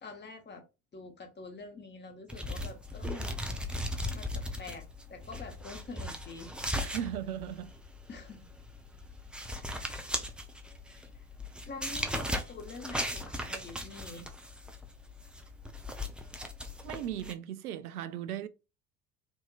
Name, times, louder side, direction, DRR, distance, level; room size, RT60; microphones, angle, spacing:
voice 1, 0.0-0.6 0.9-3.3 4.1-6.5 8.1-8.5 11.7-14.3, left 3 dB, 25° left, 1.2 m, -46 dB
sound 1, 2.3-17.3, left 1 dB, ahead, 0.4 m, -38 dB
voice 2, 6.8-7.7 16.8-18.5, right 10 dB, 75° right, 0.5 m, -37 dB
4.4 x 2.8 x 2.3 m
figure-of-eight pair, 60°, 45 cm